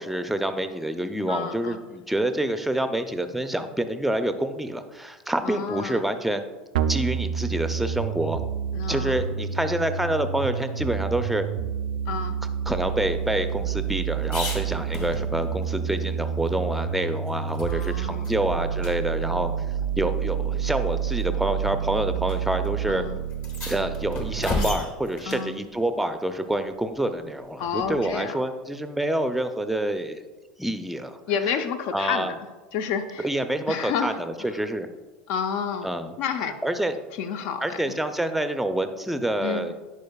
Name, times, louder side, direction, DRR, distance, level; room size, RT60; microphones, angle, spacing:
voice 1, 0.0-6.5 6.9-8.4 8.9-11.4 12.7-19.5 20.0-23.1 23.7-30.2 30.6-31.2 31.9-32.3 33.2-34.9 35.8-36.1 36.4-36.9 37.6-39.7, right 1 dB, 5° right, 8 dB, 0.5 m, -27 dB
voice 2, 1.3-1.8 5.4-6.0 8.7-9.2 12.1-12.4 17.7-18.5 22.9-23.2 25.3-25.6 27.6-28.4 31.3-32.3 32.7-33.3 33.7-34.6 35.3-35.9 36.2-36.6 37.2-37.8 39.4-39.7, left 7 dB, 60° left, 8 dB, 0.6 m, -30 dB
sound 1, 6.7-24.7, right 8 dB, 75° right, 0.4 m, -29 dB
sound 2, 12.7-15.6 16.0-16.1 16.5-17.9 18.2-18.4 18.8-18.9 20.0-20.1 21.0-21.3 22.3-22.4 22.6-22.7 23.3-25.5 27.8-28.2, left 3 dB, 40° left, 1.3 m, -35 dB
10.5 x 5.0 x 2.3 m, 1.2 s
hypercardioid pair, 85°, 4 cm